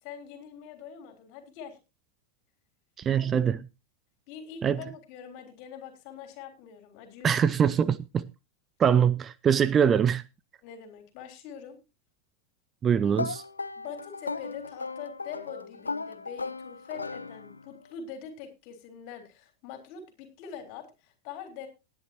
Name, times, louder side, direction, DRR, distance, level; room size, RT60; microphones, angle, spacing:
voice 1, 0.0-1.8 3.2-3.3 4.3-7.5 10.6-11.8 13.8-21.7, left 7 dB, 45° left, 3.8 m, -44 dB
voice 2, 3.0-3.6 4.6-4.8 7.2-8.3 8.8-10.2 12.8-13.4, right 8 dB, 25° right, 0.6 m, -23 dB
sound 1, 13.2-17.8, left 3 dB, 80° left, 0.7 m, -36 dB
19.0 x 9.9 x 2.9 m
figure-of-eight pair, 90°, 0 cm